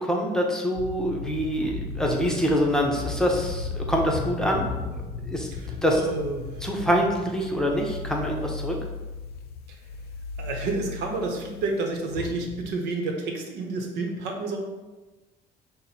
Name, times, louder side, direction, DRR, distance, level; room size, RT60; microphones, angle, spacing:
voice 1, 0.0-4.7 5.3-5.5 5.8-6.0 6.6-8.8, equal, 5° left, -1 dB, 0.7 m, -25 dB
sound 1, 0.8-12.7, left 4 dB, 70° left, 0.4 m, -35 dB
voice 2, 5.5-6.7 9.7-9.8 10.4-14.6, right 3 dB, 85° right, 2 dB, 0.9 m, -30 dB
5.8 x 2.1 x 4.2 m, 1.2 s
cardioid pair, 110°, 17 cm